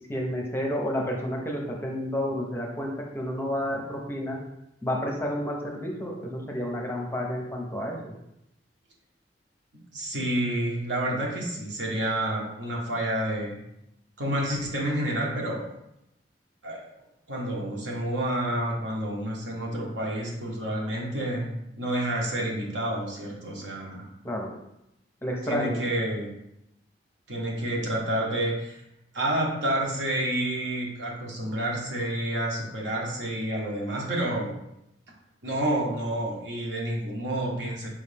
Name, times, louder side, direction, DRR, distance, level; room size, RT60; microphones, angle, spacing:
voice 1, 0.1-4.4 4.8-8.1 24.2-24.5 25.2-25.8, equal, 15° left, 0 dB, 0.6 m, -30 dB
voice 2, 9.9-13.6 14.2-15.7 16.6-16.8 17.3-24.0 25.4-26.3 27.3-28.8 29.1-34.5 35.4-37.9, right 1 dB, 75° right, -2 dB, 1.2 m, -29 dB
5.0 x 3.1 x 3.4 m, 0.84 s
head